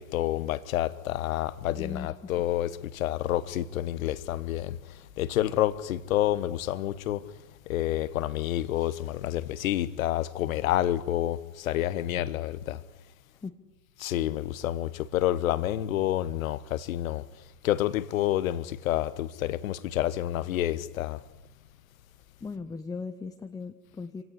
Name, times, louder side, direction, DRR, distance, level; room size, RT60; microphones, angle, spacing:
voice 1, 0.0-4.8 5.2-7.2 7.7-12.8 14.0-17.2 17.6-21.2, left 13 dB, 60° left, 1.3 m, -29 dB
voice 2, 1.8-2.3 12.1-12.3 13.4-13.6 22.4-24.2, left 4 dB, 10° left, 0.8 m, -38 dB
26.0 x 17.5 x 9.7 m
figure-of-eight pair, 95°, 47 cm